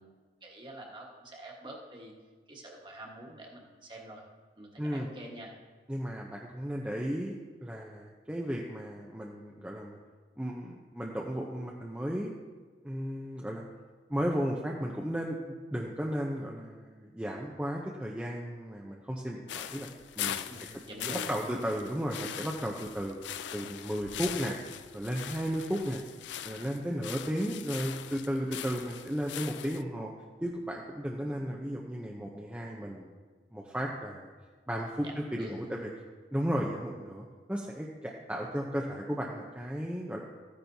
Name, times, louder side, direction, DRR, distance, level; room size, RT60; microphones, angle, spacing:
voice 1, 0.0-2.1 2.5-4.2 4.6-5.5 20.5-21.5 35.0-35.7, right 1 dB, 25° right, -1 dB, 1.4 m, -46 dB
voice 2, 5.9-10.0 10.4-12.3 12.8-13.6 14.1-19.9 20.2-20.4 21.3-23.2 23.5-24.6 24.9-26.0 26.4-30.1 30.4-33.1 33.5-34.3 34.7-35.9 36.3-40.2, equal, 5° right, -2 dB, 0.6 m, -34 dB
sound 1, 19.5-29.8, left 10 dB, 80° left, 0.4 m, -41 dB
14.0 x 10.0 x 2.7 m, 1.4 s
head